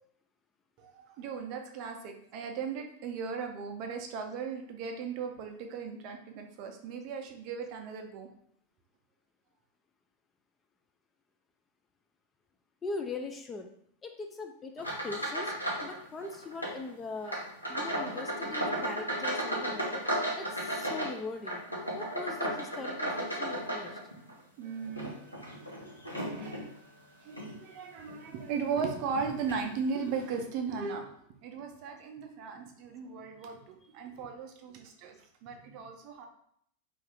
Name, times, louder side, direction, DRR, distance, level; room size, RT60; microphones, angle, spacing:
voice 1, 0.8-8.3 24.6-25.2 25.7-25.8 26.3-26.6 27.2-31.2 31.4-35.2 35.4-36.3, right 5 dB, 40° right, 4 dB, 0.5 m, -37 dB
voice 2, 12.8-13.7 14.0-15.5 15.8-17.4 17.7-20.0 20.3-21.6 22.0-23.9, left 4 dB, 20° left, 4 dB, 0.3 m, -40 dB
sound 1, 14.8-16.0 16.2-16.8 17.2-24.3 24.8-26.7 27.3-27.5 28.1-28.2 29.1-29.2 29.5-29.6, right 1 dB, 90° left, 0.7 m, -34 dB
2.6 x 2.4 x 3.3 m, 0.68 s
figure-of-eight pair, 90°, 0 cm